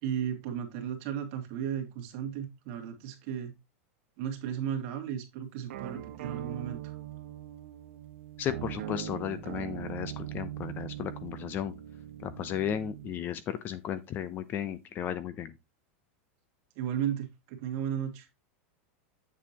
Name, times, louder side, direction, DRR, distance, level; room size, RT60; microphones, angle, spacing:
voice 1, 0.0-3.5 4.2-7.0 16.8-18.3, right 9 dB, 45° right, 2.3 m, -35 dB
sound 1, 5.7-13.1, right 11 dB, 75° right, 1.4 m, -41 dB
voice 2, 8.4-11.7 12.2-15.5, left 9 dB, 25° left, 0.6 m, -34 dB
8.2 x 7.3 x 2.9 m
supercardioid pair, 160°, 7 cm